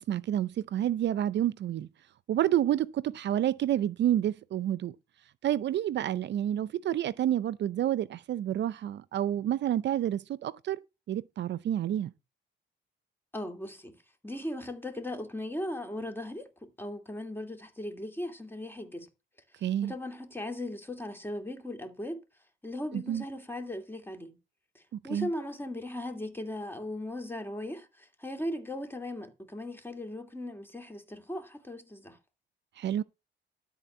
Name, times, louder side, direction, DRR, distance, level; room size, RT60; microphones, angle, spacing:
voice 1, 0.0-1.9 2.3-4.9 5.4-10.8 11.1-12.1 19.6-19.9 22.9-23.2 25.1-25.3 32.8-33.0, right 11 dB, 65° right, 0.5 m, -29 dB
voice 2, 13.3-14.0 14.2-19.1 19.8-22.2 22.6-24.4 24.7-32.2, left 1 dB, 10° left, 2.6 m, -38 dB
12.5 x 4.3 x 7.9 m
cardioid pair, 90°, 20 cm